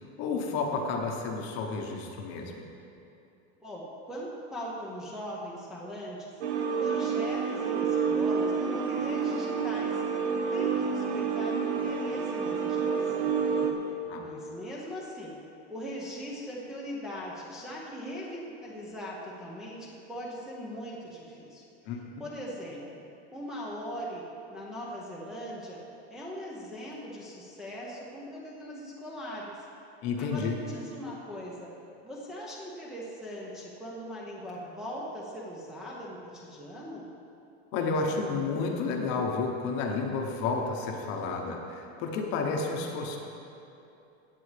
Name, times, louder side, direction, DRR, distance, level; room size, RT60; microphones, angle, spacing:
voice 1, 0.2-2.6 14.1-14.2 21.9-22.2 30.0-30.6 37.7-43.2, left 4 dB, 35° left, 2 dB, 1.0 m, -31 dB
voice 2, 3.6-10.0 10.5-15.4 15.7-21.6 22.2-23.0 23.3-24.2 24.5-25.8 26.1-29.6 30.2-31.7 32.0-37.1, equal, ahead, -7 dB, 0.7 m, -40 dB
sound 1, 6.4-13.7, right 6 dB, 85° right, 1.3 m, -29 dB
16.0 x 8.5 x 3.4 m, 2.8 s
supercardioid pair, 175°, 32 cm